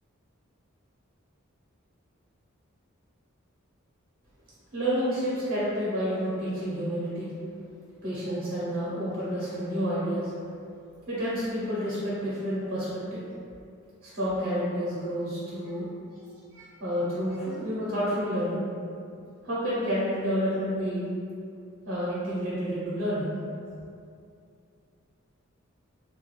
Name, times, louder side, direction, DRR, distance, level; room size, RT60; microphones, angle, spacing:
voice 1, 4.7-7.3 8.0-10.3 11.1-13.3 14.1-15.9 16.5-18.6 19.4-21.1 21.8-23.3, equal, 55° right, -9 dB, 0.7 m, -29 dB
2.3 x 2.3 x 3.1 m, 2.4 s
head